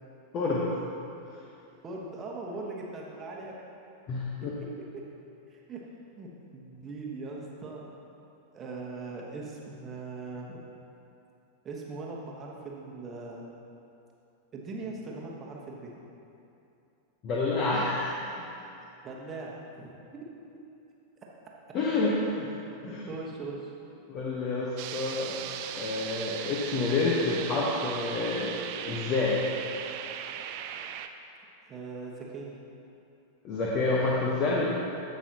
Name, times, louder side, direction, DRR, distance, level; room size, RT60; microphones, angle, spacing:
voice 1, 0.3-0.7 4.1-4.5 17.2-18.3 21.7-22.1 22.8-23.1 24.1-25.4 25.7-28.5 28.8-29.4 33.4-34.7, left 3 dB, 35° left, -5 dB, 1.1 m, -28 dB
voice 2, 1.8-3.6 4.6-5.0 5.5-5.8 6.2-7.8 8.5-10.6 11.6-13.5 14.5-15.9 19.0-19.9 22.3-22.4 22.9-23.7 31.7-32.6, right 3 dB, 25° right, -2 dB, 1.2 m, -40 dB
sound 1, 24.8-31.1, right 9 dB, 45° right, 0.4 m, -38 dB
14.5 x 5.5 x 2.9 m, 2.7 s
figure-of-eight pair, 90°, 0 cm